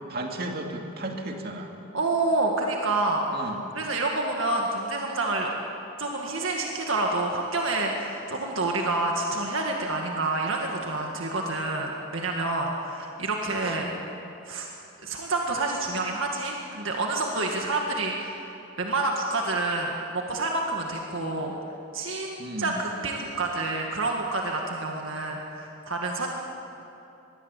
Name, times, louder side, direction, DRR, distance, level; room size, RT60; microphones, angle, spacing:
voice 1, 0.1-1.8 3.3-3.6 13.7-14.0 22.4-22.8, right 1 dB, 45° right, 2 dB, 2.5 m, -34 dB
voice 2, 1.9-3.5 3.8-5.5 6.0-13.9 14.5-14.7 15.0-18.5 18.8-21.5 21.9-26.4, right 2 dB, 65° right, 0 dB, 1.9 m, -28 dB
24.5 x 21.0 x 8.3 m, 2.9 s
head